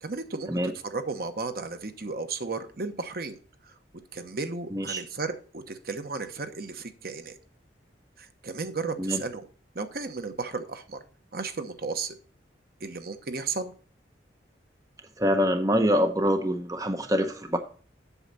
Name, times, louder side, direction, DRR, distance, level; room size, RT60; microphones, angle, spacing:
voice 1, 0.0-3.4 3.7-3.8 4.1-7.4 8.2-9.5 9.7-11.0 11.3-12.2 12.8-13.7, right 4 dB, 55° right, 9 dB, 1.0 m, -34 dB
voice 2, 4.7-5.0 9.0-9.2 15.2-17.6, equal, 20° right, 6 dB, 0.8 m, -25 dB
8.2 x 7.1 x 4.0 m, 0.40 s
head